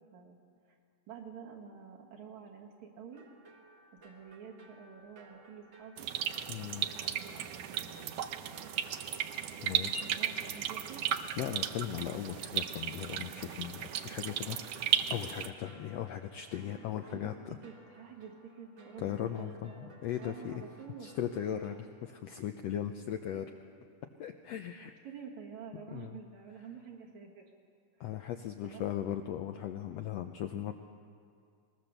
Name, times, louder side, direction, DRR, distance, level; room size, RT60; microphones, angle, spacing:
voice 1, 1.1-3.2 4.0-6.1 7.0-8.1 9.6-11.2 16.6-17.3 17.6-21.2 22.3-22.4 25.0-27.4 28.0-28.2 28.6-29.1, right 6 dB, 65° right, 0 dB, 3.3 m, -49 dB
sound 1, 3.1-21.8, right 2 dB, 45° right, 1.9 m, -58 dB
sound 2, 6.0-15.5, right 10 dB, 80° right, 1.3 m, -35 dB
voice 2, 6.5-6.9 9.6-10.0 11.4-17.6 19.0-20.6 21.0-23.5 24.2-24.9 25.9-26.2 28.0-30.8, left 10 dB, 80° left, 6 dB, 1.5 m, -38 dB
21.0 x 21.0 x 6.7 m, 2.3 s
omnidirectional pair, 3.7 m